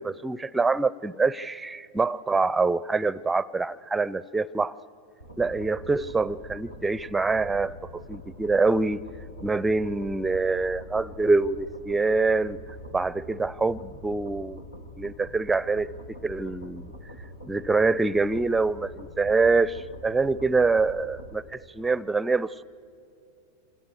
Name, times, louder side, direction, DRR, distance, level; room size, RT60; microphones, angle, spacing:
voice 1, 0.0-4.8 5.4-9.0 9.4-12.6 12.9-14.6 15.0-15.9 16.2-16.9 17.4-22.6, right 3 dB, 10° right, 0.5 m, -25 dB
sound 1, 5.2-21.3, equal, 85° left, 2.2 m, -44 dB
27.0 x 26.5 x 6.6 m
figure-of-eight pair, 90°, 0 cm